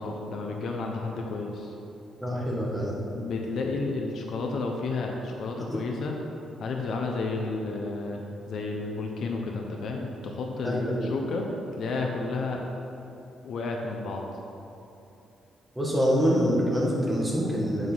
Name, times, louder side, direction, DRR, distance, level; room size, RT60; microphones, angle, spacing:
voice 1, 0.0-1.7 3.1-6.2 6.6-11.5 11.8-12.6 13.4-14.3, left 3 dB, 50° left, 1 dB, 0.9 m, -31 dB
voice 2, 2.2-3.0 5.7-5.8 10.6-11.1 15.7-17.9, equal, 5° right, -4 dB, 1.6 m, -26 dB
8.3 x 7.4 x 5.5 m, 2.8 s
cardioid pair, 175°, 0 cm